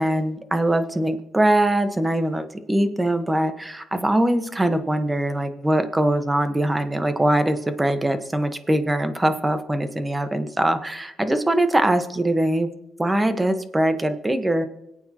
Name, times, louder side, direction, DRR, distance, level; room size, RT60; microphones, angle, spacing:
voice 1, 0.0-12.7 13.0-14.6, right 1 dB, 15° right, 8 dB, 1.3 m, -22 dB
25.5 x 8.7 x 3.0 m, 0.88 s
cardioid pair, 90°, 0 cm